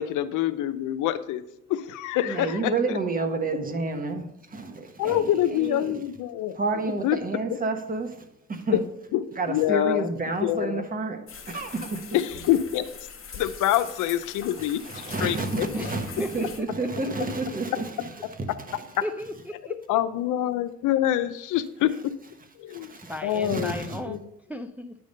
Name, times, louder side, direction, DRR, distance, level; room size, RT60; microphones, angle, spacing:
voice 1, 0.0-1.4 1.7-3.0 5.0-6.6 6.8-7.2 8.7-8.8 9.1-10.1 10.4-10.8 12.1-12.8 13.4-14.8 15.2-15.7 19.9-21.9 22.6-22.9 23.2-23.7 24.1-24.2, left 12 dB, 90° left, 0.6 m, -25 dB
voice 2, 2.2-6.0 6.5-8.1 8.5-8.8 9.4-11.2 11.5-12.0 14.6-18.3 18.7-18.8 22.7-23.1 23.5-24.0, right 3 dB, 30° right, 1.3 m, -30 dB
sound 1, 11.3-16.6, left 6 dB, 45° left, 1.4 m, -42 dB
voice 3, 15.7-17.1 19.0-20.0 23.0-24.2 24.5-24.9, equal, 5° right, 0.4 m, -36 dB
10.0 x 3.5 x 5.4 m
cardioid pair, 90°, 30 cm